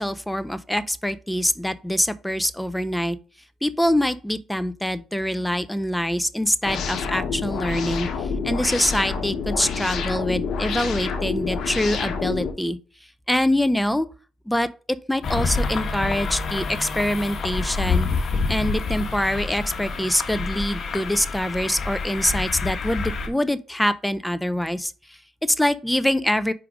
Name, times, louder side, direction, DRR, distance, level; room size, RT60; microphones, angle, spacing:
voice 1, 0.0-3.2 3.6-12.8 13.3-14.1 14.5-14.7 15.1-18.1 18.5-26.5, left 1 dB, 5° left, 0.6 m, -24 dB
sound 1, 6.6-12.5, left 5 dB, 70° left, 1.1 m, -28 dB
sound 2, 15.2-23.3, left 4 dB, 55° left, 1.3 m, -27 dB
5.0 x 4.6 x 5.1 m
supercardioid pair, 70°, 0 cm